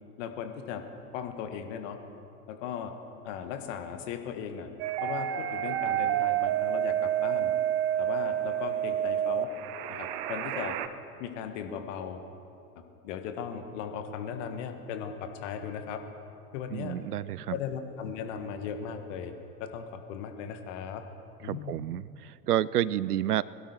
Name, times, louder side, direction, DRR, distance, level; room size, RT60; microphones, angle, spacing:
voice 1, 0.2-0.8 1.1-2.0 2.5-2.9 3.2-4.7 5.0-7.5 8.0-9.5 9.9-10.8 11.2-12.2 13.0-16.0 16.5-17.0 17.5-19.3 19.6-21.0 21.4-21.7, left 7 dB, 50° left, 7 dB, 1.6 m, -37 dB
sound 1, 4.8-10.9, right 11 dB, 40° right, 0.8 m, -29 dB
voice 2, 16.7-17.6 21.4-23.4, right 12 dB, 80° right, 20 dB, 0.5 m, -29 dB
21.5 x 12.0 x 4.4 m, 2.7 s
figure-of-eight pair, 85°, 46 cm